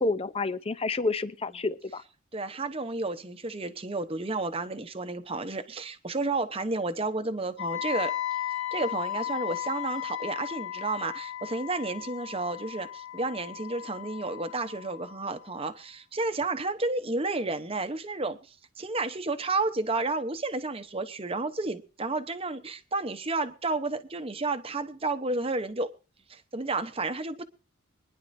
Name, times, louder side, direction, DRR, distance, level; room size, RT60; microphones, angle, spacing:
voice 1, 0.0-2.0, left 3 dB, 30° left, 0.6 m, -29 dB
voice 2, 2.3-8.1 8.7-25.9 26.3-27.4, right 3 dB, 30° right, 0.9 m, -31 dB
Wind instrument woodwind instrument, 7.6-15.5, left 12 dB, 70° left, 1.0 m, -36 dB
25.0 x 10.5 x 2.7 m
head